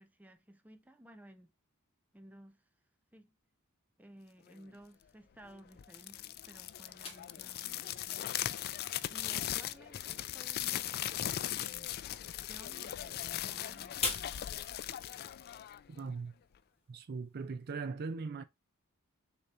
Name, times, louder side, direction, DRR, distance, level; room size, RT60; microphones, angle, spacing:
voice 1, 0.0-1.5 2.1-2.6 3.1-3.4 4.0-8.4 9.1-11.9 12.4-14.7, right 1 dB, 5° right, 0.6 m, -56 dB
sound 1, 5.8-16.1, left 12 dB, 45° left, 0.3 m, -39 dB
sound 2, 7.0-17.8, left 3 dB, 30° left, 1.9 m, -47 dB
voice 2, 15.9-16.3 16.9-18.4, right 4 dB, 50° right, 0.4 m, -39 dB
6.5 x 3.0 x 2.4 m
head